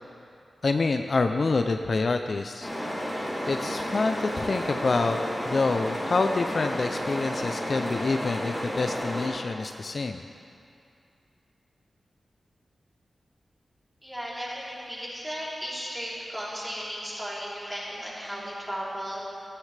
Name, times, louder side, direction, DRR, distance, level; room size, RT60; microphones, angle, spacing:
voice 1, 0.6-2.7 3.5-5.2 5.5-10.2, left 3 dB, 45° left, 6 dB, 0.4 m, -27 dB
sound 1, 2.6-9.3, equal, 10° left, 2.7 m, -31 dB
voice 2, 14.0-19.2, equal, 10° right, -8 dB, 3.3 m, -35 dB
17.0 x 13.0 x 3.3 m, 2.5 s
wide cardioid pair, 135°, 0 cm